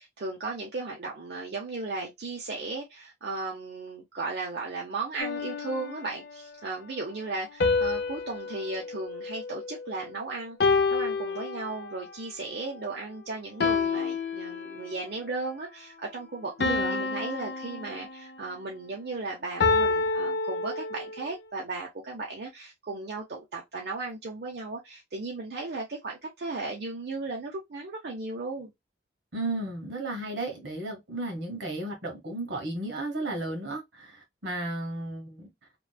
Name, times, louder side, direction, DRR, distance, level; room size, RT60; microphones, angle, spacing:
voice 1, 0.2-28.7, right 3 dB, 60° right, 0.6 m, -36 dB
sound 1, 5.2-6.4 7.6-10.0 10.6-12.1 13.6-15.1 16.6-18.5 19.6-21.2, left 4 dB, 60° left, 0.5 m, -29 dB
voice 2, 16.6-17.0 29.3-35.5, right 2 dB, 80° right, 1.3 m, -34 dB
3.0 x 2.1 x 2.2 m
head